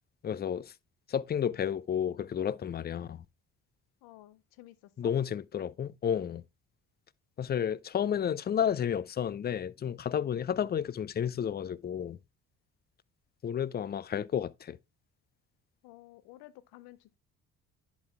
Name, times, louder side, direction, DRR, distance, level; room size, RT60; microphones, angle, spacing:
voice 1, 0.2-0.7 1.1-3.2 5.0-6.4 7.4-12.2 13.4-14.8, left 8 dB, 25° left, 0.4 m, -31 dB
voice 2, 4.0-5.1 15.8-17.2, left 17 dB, 75° left, 0.7 m, -53 dB
10.5 x 4.1 x 3.3 m
hypercardioid pair, 60°, 38 cm